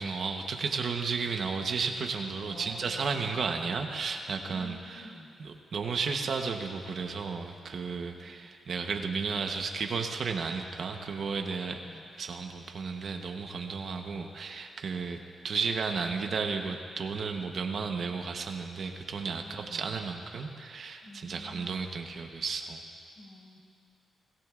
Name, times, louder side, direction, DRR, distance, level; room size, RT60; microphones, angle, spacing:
voice 1, 0.0-5.1 5.4-11.8 12.2-22.8, right 5 dB, 60° right, 4 dB, 1.0 m, -33 dB
voice 2, 2.4-3.7 4.5-5.3 8.1-8.5 11.7-12.0 15.0-15.3 19.4-20.0 21.0-21.9 23.1-23.6, left 1 dB, 35° left, -2 dB, 4.6 m, -49 dB
24.0 x 17.5 x 2.5 m, 2.3 s
cardioid pair, 90°, 0 cm